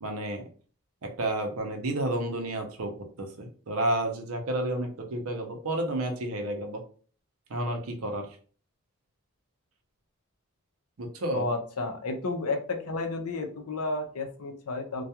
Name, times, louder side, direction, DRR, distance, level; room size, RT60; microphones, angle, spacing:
voice 1, 0.0-0.4 1.0-6.8 7.5-8.3 11.0-11.5, right 1 dB, 70° right, 4 dB, 0.6 m, -31 dB
voice 2, 11.3-15.0, left 3 dB, 80° left, 4 dB, 0.5 m, -32 dB
2.3 x 2.2 x 2.8 m, 0.42 s
head